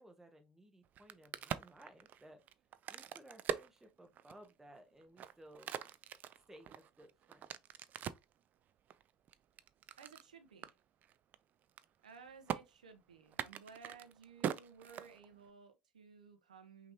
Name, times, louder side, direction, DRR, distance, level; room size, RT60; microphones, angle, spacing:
voice 1, 0.0-2.4 2.9-5.7 6.5-7.5, right 1 dB, 10° right, 1.1 m, -59 dB
Crack, 0.8-4.5 5.0-8.3 8.9-10.3 10.6-10.7 11.0-11.3 11.6-12.1 12.5-12.6 13.3-15.5, right 9 dB, 45° right, 0.4 m, -42 dB
voice 2, 10.0-10.7 12.0-16.9, right 6 dB, 85° right, 0.8 m, -56 dB
5.7 x 2.9 x 2.8 m
hypercardioid pair, 70°, 4 cm